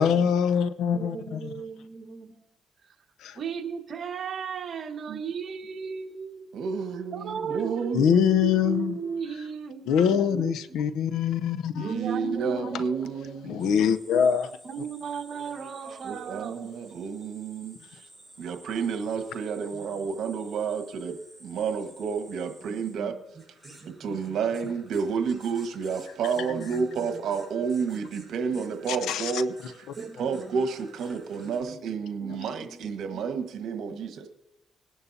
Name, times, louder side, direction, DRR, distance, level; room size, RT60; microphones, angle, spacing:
voice 1, 0.0-1.5 3.2-3.4 7.9-8.9 9.9-11.9 12.2-12.4 12.7-12.8 13.4-14.6 28.9-29.4, left 7 dB, 85° left, 12 dB, 0.7 m, -24 dB
voice 2, 0.9-2.3 2.9-3.0 3.4-6.5 7.1-8.0 8.3-10.8 11.8-13.3 14.6-16.8 22.7-23.1 23.6-24.3 26.4-27.1 28.5-28.6 30.0-30.6 31.3-31.8 32.2-33.2 33.9-34.2, right 6 dB, 50° right, 3 dB, 1.6 m, -37 dB
voice 3, 6.5-8.3 11.8-13.8 16.0-17.8 18.4-23.1 24.0-29.5 30.0-34.3, right 6 dB, 75° right, 6 dB, 1.4 m, -30 dB
sound 1, 13.6-31.6, right 1 dB, 5° left, 5.5 m, -53 dB
21.0 x 11.0 x 2.8 m, 0.92 s
cardioid pair, 90°, 0 cm